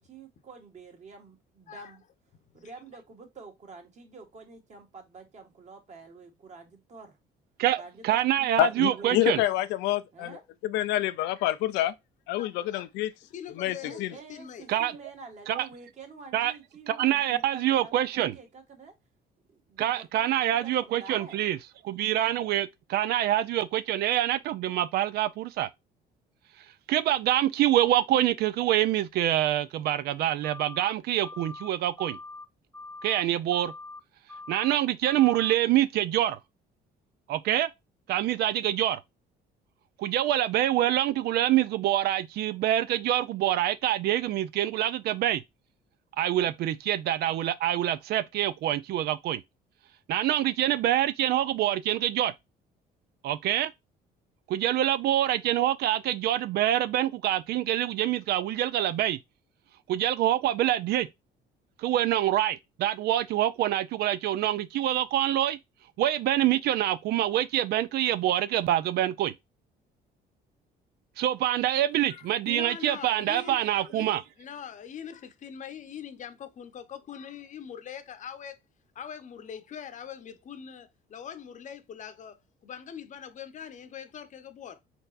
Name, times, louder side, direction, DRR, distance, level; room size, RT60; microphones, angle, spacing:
voice 1, 0.0-2.0 2.5-7.2 7.8-9.4 10.1-10.4 13.8-18.9 19.5-21.4, right 4 dB, 40° right, 1.7 m, -48 dB
voice 2, 7.6-9.4 14.7-14.9 15.5-15.7 16.3-16.5 16.9-18.3 19.8-21.6 21.8-25.7 26.9-32.2 33.0-33.7 34.5-36.4 37.3-37.7 38.1-39.0 40.0-45.4 46.2-49.4 50.1-52.3 53.2-53.7 54.5-59.2 59.9-61.1 61.8-65.6 66.0-69.3 71.2-74.2, right 12 dB, 70° right, 0.5 m, -26 dB
voice 3, 8.6-11.9 12.3-13.1 13.5-14.1, left 14 dB, 90° left, 0.5 m, -27 dB
voice 4, 12.4-12.9 13.3-14.7 72.1-78.6 78.9-84.8, left 8 dB, 45° left, 0.8 m, -42 dB
sound 1, 30.4-30.9 31.2-31.7 32.0-32.5 32.7-33.2 33.5-34.0 34.3-34.8 35.1-35.5, left 3 dB, 5° left, 0.6 m, -43 dB
4.4 x 4.1 x 2.5 m
cardioid pair, 110°, 17 cm